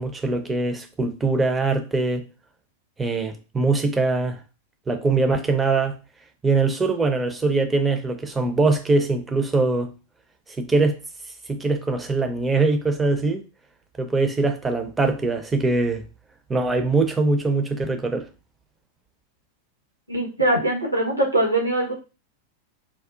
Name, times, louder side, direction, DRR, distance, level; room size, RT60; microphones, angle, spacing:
voice 1, 0.0-2.2 3.0-4.4 4.9-5.9 6.4-9.9 10.6-11.0 11.5-13.4 14.0-16.1 16.5-18.3, right 3 dB, 15° right, 0.6 m, -22 dB
voice 2, 20.1-21.9, right 1 dB, 85° right, 1.0 m, -22 dB
3.6 x 2.3 x 2.4 m
figure-of-eight pair, 90°, 0 cm